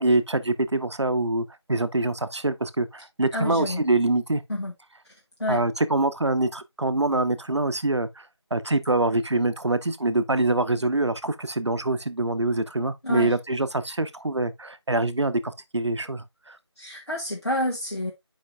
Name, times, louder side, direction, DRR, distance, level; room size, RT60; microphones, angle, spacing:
voice 1, 0.0-4.4 5.5-8.2 8.5-16.6, right 2 dB, 70° right, 0.7 m, -25 dB
voice 2, 3.3-3.8 4.5-4.7 5.4-5.6 13.0-13.3 16.8-18.1, left 1 dB, 65° left, 1.6 m, -28 dB
8.9 x 5.1 x 2.2 m
figure-of-eight pair, 180°, 15 cm